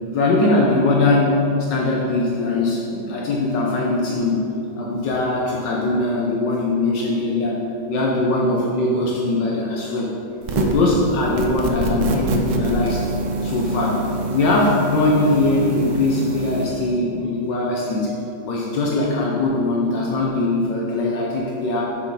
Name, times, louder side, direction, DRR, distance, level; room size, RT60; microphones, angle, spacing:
voice 1, 0.1-4.4 4.8-7.6 7.9-10.1 10.5-13.1 13.4-18.1 18.4-21.9, left 2 dB, 75° left, -3 dB, 1.4 m, -21 dB
sound 1, 10.4-10.9 11.4-16.6, right 3 dB, 85° right, 1.4 m, -25 dB
6.5 x 4.4 x 5.6 m, 2.8 s
omnidirectional pair, 2.0 m